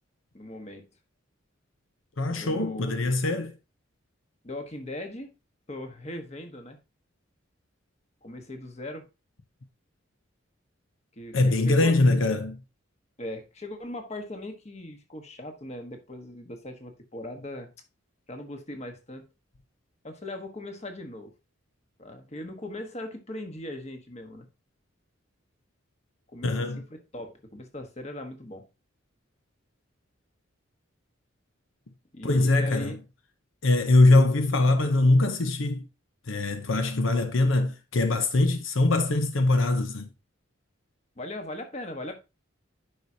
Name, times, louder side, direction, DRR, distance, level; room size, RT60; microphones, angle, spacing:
voice 1, 0.3-0.9 2.3-3.1 4.4-5.3 5.7-6.8 8.2-9.1 11.2-11.9 13.2-17.7 18.3-19.3 20.0-21.3 22.0-24.5 26.3-28.7 32.1-33.0 41.2-42.2, left 1 dB, 35° left, 1.3 m, -39 dB
voice 2, 2.2-3.5 11.3-12.6 26.4-26.8 32.2-33.0 33.6-35.9 36.3-40.1, left 2 dB, 75° left, 0.8 m, -22 dB
10.5 x 4.8 x 2.8 m
head